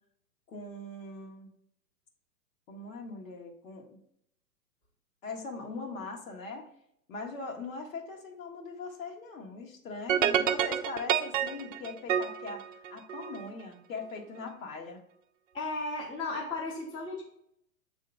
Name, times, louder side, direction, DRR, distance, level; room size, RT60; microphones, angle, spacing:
voice 1, 0.5-1.5 2.7-4.0 5.2-6.7 7.1-12.6 12.9-15.0, left 3 dB, 55° left, 1 dB, 1.7 m, -41 dB
sound 1, 10.1-13.5, right 9 dB, 55° right, 0.6 m, -28 dB
voice 2, 15.5-17.2, left 3 dB, 10° left, -3 dB, 0.8 m, -35 dB
7.7 x 3.6 x 3.4 m, 0.72 s
figure-of-eight pair, 120°, 48 cm